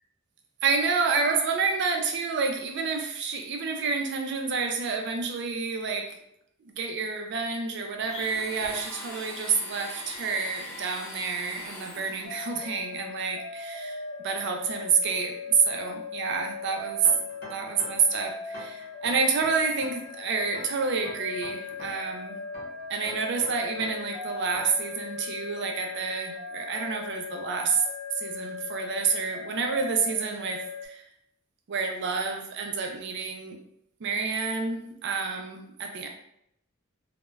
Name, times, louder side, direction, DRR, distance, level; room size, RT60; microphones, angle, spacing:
voice 1, 0.6-6.2 6.7-14.0 14.2-17.1 17.4-22.4 22.9-27.8 28.2-31.0 31.7-33.6 34.0-36.1, right 5 dB, 60° right, 3 dB, 0.4 m, -29 dB
Domestic sounds home sounds, 8.0-12.4, left 1 dB, 10° left, 1.0 m, -41 dB
sound 1, 12.2-30.9, left 5 dB, 65° left, 0.4 m, -39 dB
sound 2, 17.0-18.1 18.5-20.1 20.5-22.1 22.5-24.1 24.5-24.9, equal, 50° left, 0.9 m, -45 dB
3.1 x 2.1 x 2.2 m, 0.75 s
head